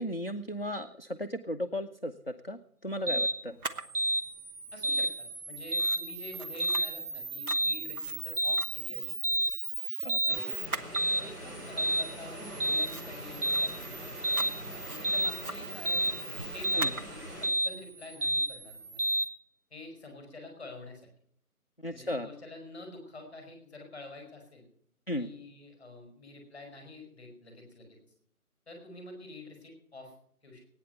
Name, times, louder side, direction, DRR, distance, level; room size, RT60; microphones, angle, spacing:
voice 1, 0.0-2.1 2.4-3.6 10.0-10.2 16.8-16.9 21.8-22.3 25.1-25.3, left 1 dB, 40° left, 4 dB, 0.5 m, -35 dB
sound 1, 3.1-3.4 3.9-4.2 4.8-5.1 5.7-6.0 6.6-6.9 7.5-7.8 8.4-8.7 9.2-9.5 10.1-10.4 10.9-11.2 11.8-12.1 12.6-12.9 13.4-13.7 14.2-14.5 15.0-15.3 15.9-16.1 16.6-16.9 17.4-17.7 18.2-18.5 19.0-19.3, right 1 dB, 85° right, 1.4 m, -28 dB
Camera, 3.6-19.3, right 3 dB, 70° right, 1.2 m, -40 dB
voice 2, 4.7-9.4 10.2-10.5 10.8-16.1 16.5-19.1 19.7-21.1 21.9-24.6 25.2-28.0 28.7-30.1 30.4-30.6, left 2 dB, 5° left, 1 dB, 4.5 m, -48 dB
sound 2, 10.3-17.5, equal, 45° right, 5.1 m, -43 dB
17.5 x 9.6 x 6.7 m, 0.65 s
figure-of-eight pair, 170°, 46 cm